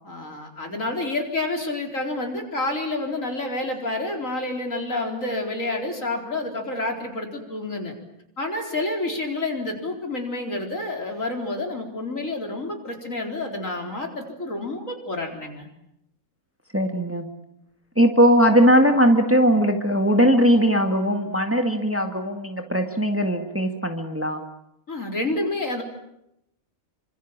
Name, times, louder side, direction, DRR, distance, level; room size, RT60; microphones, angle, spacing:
voice 1, 0.0-7.9 8.4-15.7 24.9-25.8, left 2 dB, 65° left, 2 dB, 4.7 m, -29 dB
voice 2, 16.7-17.3 18.0-24.4, equal, 10° right, 5 dB, 1.9 m, -19 dB
27.5 x 25.5 x 7.5 m, 0.81 s
omnidirectional pair, 1.5 m